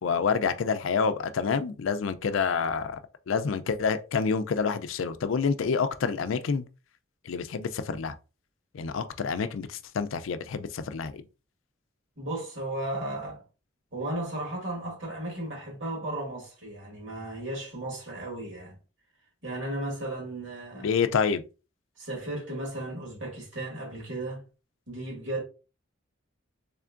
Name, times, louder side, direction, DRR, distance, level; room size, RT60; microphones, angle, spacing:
voice 1, 0.0-3.0 3.3-6.6 7.2-8.1 8.7-11.2 20.8-21.4, left 5 dB, 80° left, 0.4 m, -28 dB
voice 2, 12.2-13.4 13.9-18.8 19.4-21.0 22.0-24.4 24.9-25.4, right 1 dB, 65° right, 2.1 m, -35 dB
3.6 x 3.4 x 2.4 m
head